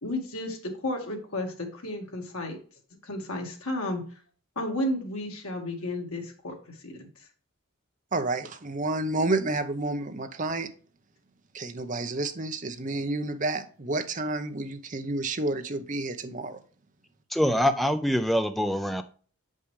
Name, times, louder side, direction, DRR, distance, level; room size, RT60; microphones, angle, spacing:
voice 1, 0.0-2.6 3.0-4.0 4.6-6.6 6.8-7.1, left 1 dB, 85° left, 1.9 m, -32 dB
voice 2, 8.1-10.7 11.5-16.6, right 2 dB, 35° right, 0.8 m, -30 dB
voice 3, 17.3-19.0, equal, ahead, 0.3 m, -24 dB
7.7 x 5.4 x 3.3 m
head